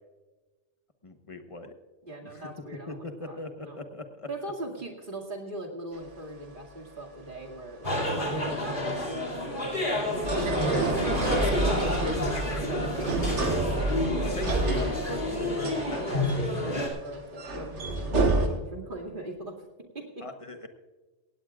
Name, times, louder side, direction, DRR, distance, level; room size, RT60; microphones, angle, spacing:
voice 1, 1.0-1.7 2.2-2.4 2.9-4.3 12.2-12.6 14.3-16.1 20.2-20.7, left 2 dB, 30° left, 7 dB, 1.1 m, -39 dB
voice 2, 2.0-3.8 4.3-8.8 10.3-12.1 12.7-14.6 15.4-15.5 16.0-19.7 19.9-20.2, right 1 dB, 45° right, -1 dB, 2.5 m, -39 dB
sound 1, 5.9-18.5, right 2 dB, 80° right, 1.9 m, -30 dB
sound 2, 7.8-16.9, left 1 dB, 45° left, 2.9 m, -29 dB
17.0 x 17.0 x 2.5 m, 1.2 s
omnidirectional pair, 1.2 m